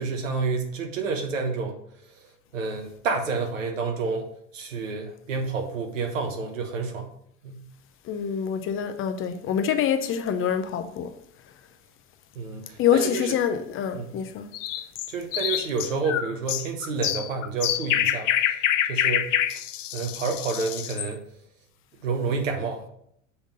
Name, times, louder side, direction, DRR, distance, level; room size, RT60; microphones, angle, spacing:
voice 1, 0.0-1.8 2.5-4.3 4.5-7.1 7.4-7.6 12.3-13.4 13.9-14.2 15.1-19.3 19.9-21.2 22.0-22.9, right 4 dB, 75° right, 1.2 m, -29 dB
voice 2, 8.1-11.1 12.8-14.5, left 8 dB, 35° left, 0.7 m, -25 dB
sound 1, 14.5-21.1, left 11 dB, 75° left, 0.5 m, -26 dB
7.0 x 3.6 x 5.2 m
figure-of-eight pair, 80°, 38 cm